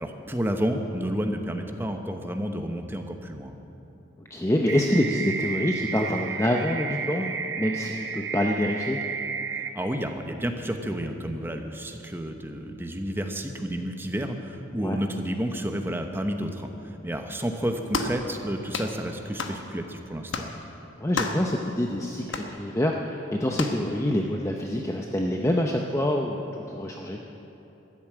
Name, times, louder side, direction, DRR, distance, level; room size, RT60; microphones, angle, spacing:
voice 1, 0.0-3.6 9.7-20.5, equal, 10° right, 5 dB, 0.8 m, -30 dB
voice 2, 4.3-9.0 14.8-15.0 21.0-27.2, left 1 dB, 15° left, 1 dB, 0.6 m, -26 dB
sound 1, 4.7-9.7, right 6 dB, 60° right, 0.8 m, -32 dB
sound 2, 17.9-18.2 18.7-19.0 19.4-19.6 20.3-20.5 21.2-21.5 22.3-22.5 23.6-23.8, left 3 dB, 65° left, 1.1 m, -30 dB
13.0 x 11.0 x 8.8 m, 3.0 s
head